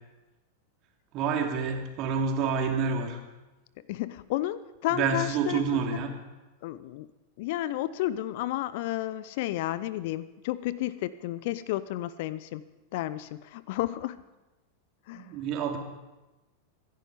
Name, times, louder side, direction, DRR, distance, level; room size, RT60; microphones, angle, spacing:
voice 1, 1.1-3.2 4.9-6.1 15.1-15.8, right 6 dB, 40° right, 2 dB, 2.9 m, -28 dB
voice 2, 3.9-6.0 6.6-7.1 7.4-12.6 12.9-14.2 15.1-15.3, left 14 dB, 50° left, 17 dB, 0.6 m, -32 dB
25.0 x 10.5 x 5.2 m, 1.1 s
figure-of-eight pair, 90°, 0 cm